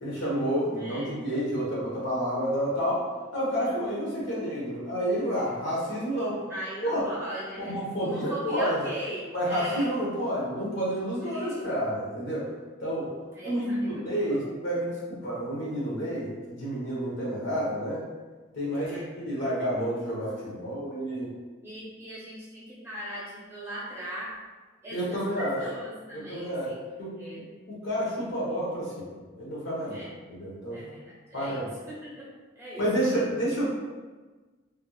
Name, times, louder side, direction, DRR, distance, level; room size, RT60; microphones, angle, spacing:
voice 1, 0.0-3.1 3.3-6.4 6.8-7.1 7.6-8.8 9.3-12.5 12.8-13.1 13.4-18.0 18.5-21.3 24.9-25.6 26.1-26.7 27.0-30.8 31.3-31.7 32.8-33.7, equal, 80° left, -6 dB, 1.2 m, -30 dB
voice 2, 0.7-1.1 3.6-3.9 6.5-9.9 11.3-11.7 13.3-14.5 18.7-19.0 21.6-24.3 24.8-26.8 27.2-27.5 29.8-30.1 30.7-32.3 32.6-33.3, right 1 dB, 15° right, -8 dB, 1.0 m, -39 dB
3.4 x 2.8 x 2.3 m, 1.3 s
head